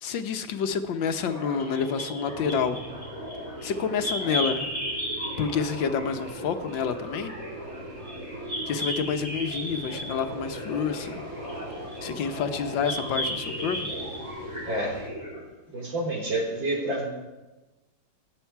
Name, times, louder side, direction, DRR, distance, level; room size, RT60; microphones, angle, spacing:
voice 1, 0.0-2.8 3.6-4.7 5.4-7.3 8.7-11.2 12.0-13.9, left 6 dB, 80° left, 8 dB, 1.7 m, -28 dB
sound 1, 1.2-15.4, equal, 15° right, 5.2 m, -35 dB
sound 2, 2.2-15.1, right 1 dB, 55° right, 2.6 m, -46 dB
voice 2, 14.6-15.0 15.7-17.1, right 1 dB, 80° right, -1 dB, 4.4 m, -28 dB
24.0 x 9.9 x 4.6 m, 1.1 s
omnidirectional pair, 2.0 m